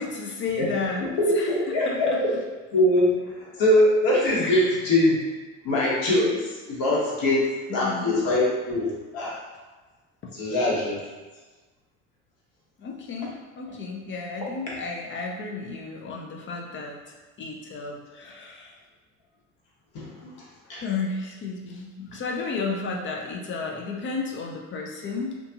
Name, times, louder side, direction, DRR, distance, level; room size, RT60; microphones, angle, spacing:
voice 1, 0.0-1.1 1.3-2.2 4.4-4.8 7.7-8.2 10.2-10.3 12.8-18.8 20.7-25.4, left 4 dB, 30° left, 0 dB, 0.5 m, -33 dB
voice 2, 1.0-2.4 2.7-5.2 5.6-9.3 10.3-11.0 19.9-20.8, left 1 dB, 55° left, -5 dB, 1.2 m, -23 dB
2.5 x 2.4 x 2.7 m, 1.3 s
hypercardioid pair, 60°, 41 cm